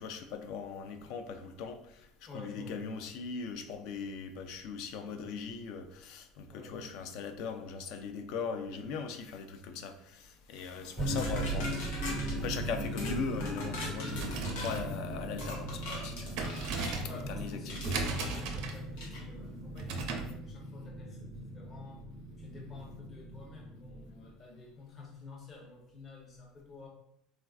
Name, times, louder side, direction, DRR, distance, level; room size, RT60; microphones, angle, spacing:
voice 1, 0.0-11.8 12.3-16.4 17.3-18.0, left 5 dB, 65° left, 7 dB, 0.3 m, -40 dB
voice 2, 2.3-2.8 6.5-6.8 17.0-22.1 22.4-26.9, left 3 dB, 35° left, -1 dB, 0.7 m, -49 dB
sound 1, 11.0-24.3, right 1 dB, 10° right, 0.4 m, -39 dB
sound 2, 11.2-12.4 13.0-13.2 13.4-14.8 15.4-17.0 17.7-18.4 19.0-19.2, left 2 dB, 90° left, 0.8 m, -42 dB
sound 3, 14.0-20.4, right 4 dB, 70° right, 0.5 m, -38 dB
3.2 x 2.4 x 2.3 m, 0.74 s
supercardioid pair, 130°, 0 cm